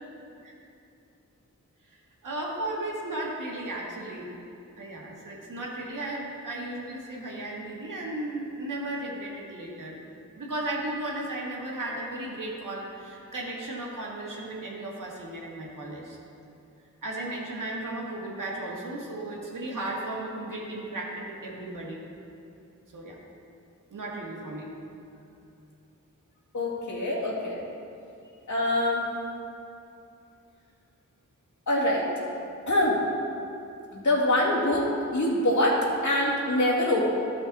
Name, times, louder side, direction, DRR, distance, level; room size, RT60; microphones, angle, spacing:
voice 1, 1.9-4.3 4.8-10.0 10.4-16.2 17.0-22.0 22.9-23.2 23.9-24.7, right 1 dB, 80° right, -3 dB, 1.9 m, -35 dB
voice 2, 26.5-27.6 28.5-29.1 31.7-32.0 32.7-33.0 33.9-34.8 35.1-37.1, left 1 dB, 65° left, -6 dB, 2.3 m, -24 dB
13.0 x 6.4 x 4.1 m, 2.7 s
wide cardioid pair, 75°, 31 cm